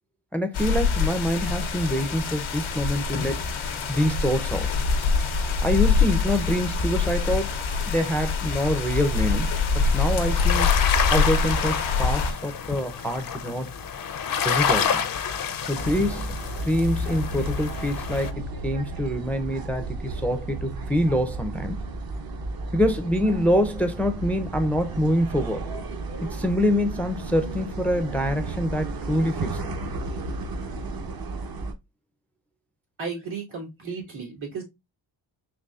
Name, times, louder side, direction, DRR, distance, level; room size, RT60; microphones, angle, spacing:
voice 1, 0.3-3.4 3.9-4.7 5.6-7.6 7.9-10.7 11.1-13.7 14.4-15.0 15.6-16.3 16.6-21.8 22.7-25.7 26.3-29.7, equal, 5° left, 0.5 m, -25 dB
sound 1, 0.5-12.3, left 5 dB, 90° left, 0.9 m, -24 dB
sound 2, 9.1-18.3, left 7 dB, 50° left, 0.6 m, -29 dB
sound 3, 15.8-31.7, right 2 dB, 50° right, 0.8 m, -33 dB
voice 2, 33.0-34.6, right 5 dB, 80° right, 2.2 m, -34 dB
4.0 x 3.0 x 2.3 m
cardioid pair, 85°, 46 cm